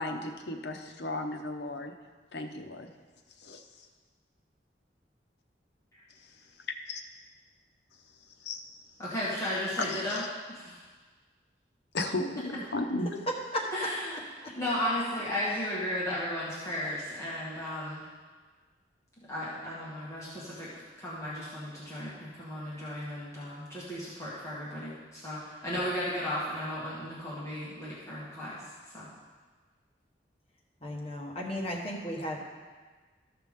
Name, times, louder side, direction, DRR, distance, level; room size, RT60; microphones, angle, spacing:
voice 1, 0.0-1.9 2.3-2.9 3.4-3.9 6.9-7.0 8.4-8.6 9.9-10.2 11.9-13.1, left 2 dB, 70° left, 4 dB, 0.8 m, -35 dB
voice 2, 9.0-10.2 10.5-10.8 13.7-14.2 14.5-18.0 19.3-29.1, left 1 dB, 15° left, -9 dB, 1.7 m, -35 dB
voice 3, 13.3-13.7 30.8-32.4, equal, 35° left, -2 dB, 1.4 m, -34 dB
13.5 x 5.8 x 3.6 m, 1.4 s
head